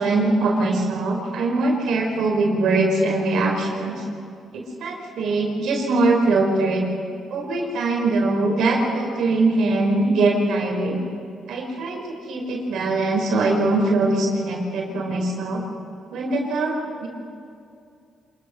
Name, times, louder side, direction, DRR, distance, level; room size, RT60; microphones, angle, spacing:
voice 1, 0.0-4.0 4.5-6.9 7.3-11.0 11.5-15.6 16.1-16.7 17.0-17.1, right 2 dB, 75° right, 0 dB, 4.9 m, -22 dB
26.5 x 21.0 x 6.5 m, 2.5 s
cardioid pair, 90°, 0 cm